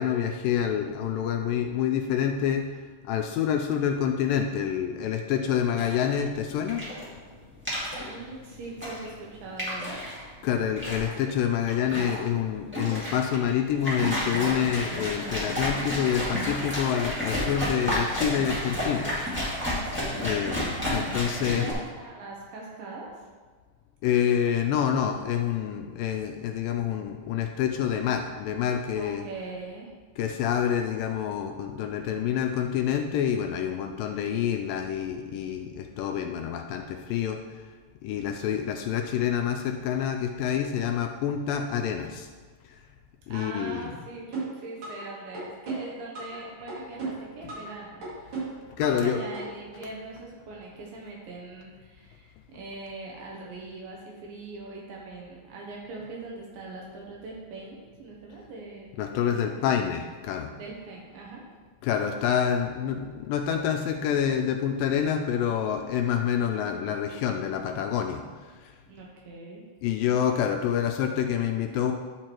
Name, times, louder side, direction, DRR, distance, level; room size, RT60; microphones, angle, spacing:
voice 1, 0.0-6.9 10.4-19.1 20.2-21.7 24.0-29.3 30.2-37.7 38.0-42.3 42.6-42.8 43.3-43.9 48.8-49.2 59.0-60.5 61.8-68.8 69.8-71.9, left 9 dB, 80° left, 4 dB, 2.0 m, -27 dB
sound 1, 5.8-21.7, left 1 dB, 5° right, 1.1 m, -31 dB
voice 2, 8.1-10.0 21.5-21.7 22.0-23.1 29.0-29.9 43.3-48.1 48.8-58.9 59.2-59.5 60.6-61.4 68.9-69.6, right 3 dB, 75° right, -2 dB, 2.6 m, -41 dB
sound 2, 44.3-45.1 45.3-46.4 46.7-47.7 48.0-49.1 49.3-49.4, right 4 dB, 50° right, 3.4 m, -34 dB
10.5 x 4.6 x 4.4 m, 1.4 s
omnidirectional pair, 4.3 m